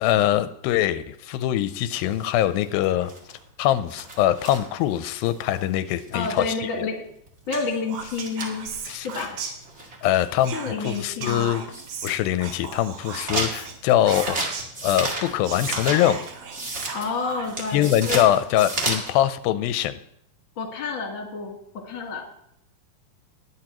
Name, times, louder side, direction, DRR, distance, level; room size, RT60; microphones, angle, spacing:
voice 1, 0.0-3.1 3.6-6.9 8.9-9.1 10.0-11.6 12.0-14.6 14.8-16.2 17.7-20.0, left 12 dB, 90° left, 13 dB, 2.4 m, -23 dB
sound 1, 2.1-6.6 7.0-7.1 7.3-7.4 7.7-7.8 8.0-10.4 10.9-11.1 11.6-12.2 12.5-19.1, right 2 dB, 30° right, 1.3 m, -33 dB
voice 2, 6.1-7.0 7.5-8.7 9.0-9.4 10.5-11.6 16.9-18.3 20.6-22.2, left 4 dB, 45° left, 2 dB, 2.0 m, -29 dB
Whispering, 7.5-10.0 10.4-14.8 15.2-15.3 15.4-17.7, right 6 dB, 65° right, 2.1 m, -36 dB
20.5 x 8.3 x 3.0 m, 0.72 s
omnidirectional pair, 4.1 m